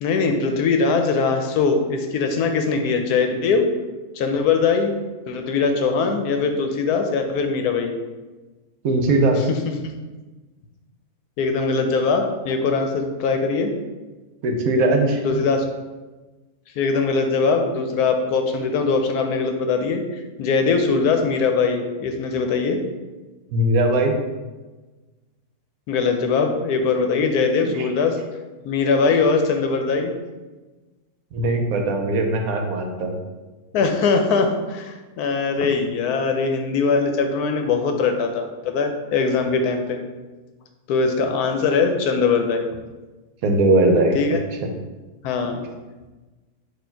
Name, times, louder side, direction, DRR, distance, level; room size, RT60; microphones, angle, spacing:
voice 1, 0.0-3.7 4.1-4.9 5.3-7.9 9.5-9.6 11.4-13.7 15.2-15.6 16.8-22.8 25.9-28.2 28.6-30.1 33.7-40.0 40.9-42.7 44.1-44.4 45.2-45.6, left 4 dB, 80° left, 5 dB, 1.1 m, -21 dB
voice 2, 8.8-9.4 14.4-15.2 23.5-24.1 27.8-27.9 31.3-33.2 43.4-44.4, right 2 dB, 70° right, 3 dB, 1.0 m, -19 dB
4.4 x 2.7 x 4.4 m, 1.2 s
omnidirectional pair, 1.6 m